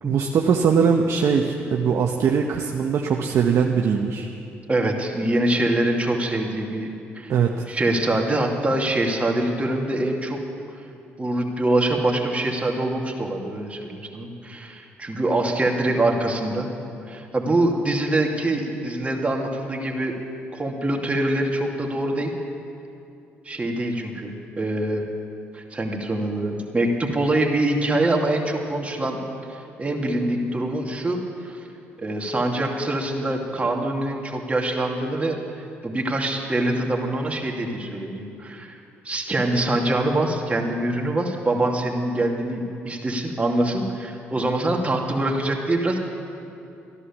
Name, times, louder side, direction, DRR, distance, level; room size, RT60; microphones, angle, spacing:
voice 1, 0.0-4.3 7.3-7.6, right 6 dB, 60° right, 2 dB, 0.9 m, -21 dB
voice 2, 4.7-6.9 7.1-7.3 7.7-10.4 11.2-16.7 17.1-20.1 20.5-22.3 23.4-25.0 25.5-29.2 29.5-31.6 32.0-38.7 39.0-46.0, right 1 dB, 25° right, 1 dB, 2.4 m, -24 dB
14.0 x 11.0 x 7.2 m, 2.7 s
supercardioid pair, 65°, 5 cm